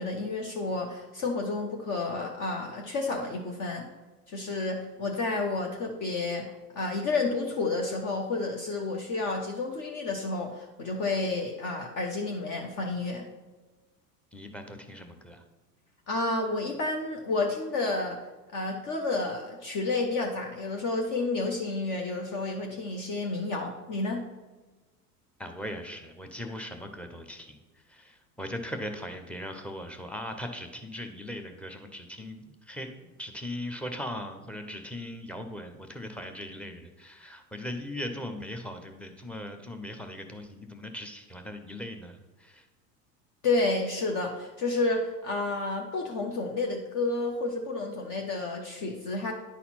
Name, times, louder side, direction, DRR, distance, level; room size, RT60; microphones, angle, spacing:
voice 1, 0.0-3.9 4.3-13.3 16.1-18.2 18.5-24.2 43.4-49.3, left 3 dB, 40° left, 1 dB, 1.0 m, -30 dB
voice 2, 14.3-15.4 25.4-27.6 27.9-42.6, left 1 dB, ahead, 6 dB, 0.7 m, -39 dB
10.0 x 4.2 x 4.3 m, 1.2 s
hypercardioid pair, 85°, 48 cm